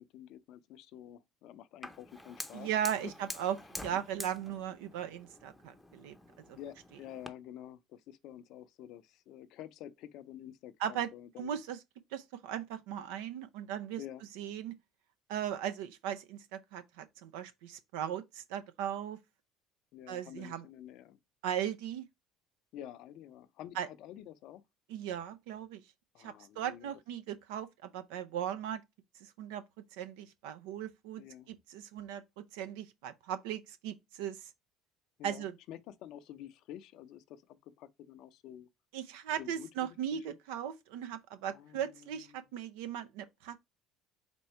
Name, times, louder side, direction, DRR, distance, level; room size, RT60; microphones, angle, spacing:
voice 1, 0.0-2.7 3.0-3.1 3.9-4.0 6.6-11.5 14.0-14.2 19.9-21.2 22.7-24.6 26.1-26.9 31.2-31.5 35.2-38.7 39.4-39.9 41.5-42.5, left 11 dB, 65° left, 0.5 m, -49 dB
Fire, 1.8-7.3, left 1 dB, 5° left, 0.6 m, -47 dB
voice 2, 2.5-6.2 6.5-6.6 10.8-11.1 11.4-11.8 12.1-14.0 14.4-14.7 15.3-19.2 20.1-20.6 21.4-22.1 23.8-23.9 24.9-25.8 26.2-28.8 29.2-29.6 29.9-31.2 31.5-34.5 35.2-35.5 38.9-43.6, right 10 dB, 80° right, 0.5 m, -38 dB
4.4 x 2.7 x 4.4 m
supercardioid pair, 80°, 0 cm